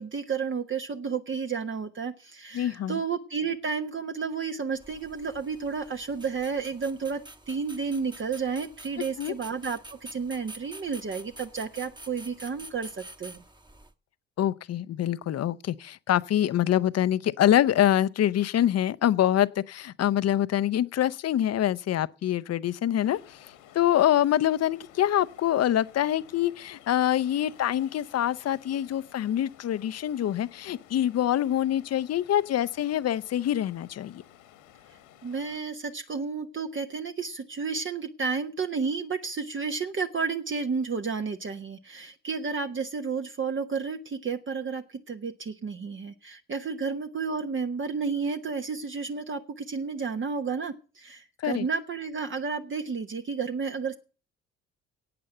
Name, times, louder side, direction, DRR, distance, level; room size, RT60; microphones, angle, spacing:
voice 1, 0.0-7.2 7.5-13.4 35.2-54.0, right 5 dB, 40° right, 1.2 m, -31 dB
voice 2, 2.5-3.0 9.2-9.3 14.4-23.4 23.7-34.2 51.4-51.7, left 11 dB, 50° left, 0.7 m, -25 dB
sound 1, 4.8-13.9, right 1 dB, 15° right, 1.4 m, -48 dB
Ocean, 23.0-35.6, left 11 dB, 80° left, 1.9 m, -54 dB
12.0 x 8.7 x 7.9 m
hypercardioid pair, 50°, 32 cm